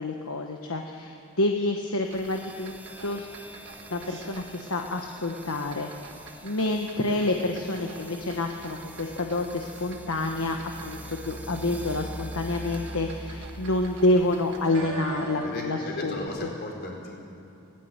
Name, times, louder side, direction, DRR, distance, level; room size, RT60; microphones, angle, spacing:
voice 1, 0.0-2.7 3.0-3.3 3.9-5.9 6.4-10.6 10.8-16.3, left 2 dB, 65° left, 3 dB, 1.2 m, -28 dB
sound 1, 2.1-14.9, right 1 dB, 5° right, 1.0 m, -43 dB
sound 2, 2.1-15.9 16.1-16.3, right 5 dB, 55° right, 1.9 m, -46 dB
voice 2, 14.7-17.1, left 1 dB, 50° left, 0 dB, 4.8 m, -36 dB
18.0 x 15.5 x 9.6 m, 2.9 s
head